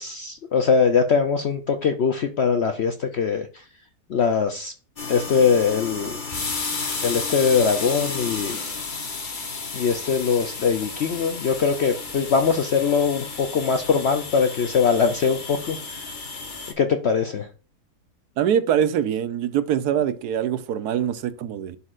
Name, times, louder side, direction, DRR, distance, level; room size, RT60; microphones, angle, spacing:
voice 1, 0.0-3.5 4.1-4.7 5.1-6.1 7.0-8.6 9.7-15.8 16.8-17.5, left 6 dB, 65° left, 0.6 m, -22 dB
sound 1, 5.0-16.7, left 4 dB, 35° left, 1.0 m, -32 dB
voice 2, 18.4-21.8, right 9 dB, 75° right, 1.2 m, -23 dB
11.5 x 4.3 x 2.5 m
omnidirectional pair, 1.7 m